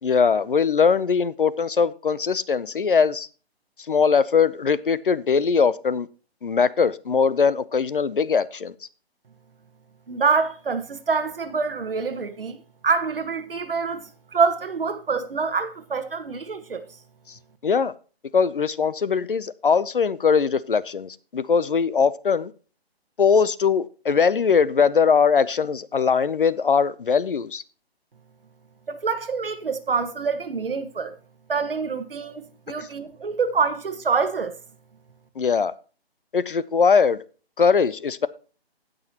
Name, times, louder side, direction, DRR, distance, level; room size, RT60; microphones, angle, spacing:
voice 1, 0.0-3.3 3.9-6.1 6.4-8.7 17.6-17.9 18.3-22.5 23.2-27.6 32.8-32.9 35.4-35.7 36.3-37.2 37.6-38.3, left 6 dB, 55° left, 0.6 m, -21 dB
voice 2, 10.1-12.6 12.8-14.0 14.3-16.8 28.9-31.1 31.5-34.5, right 5 dB, 60° right, 1.4 m, -26 dB
18.0 x 6.3 x 2.9 m
hypercardioid pair, 175°, 32 cm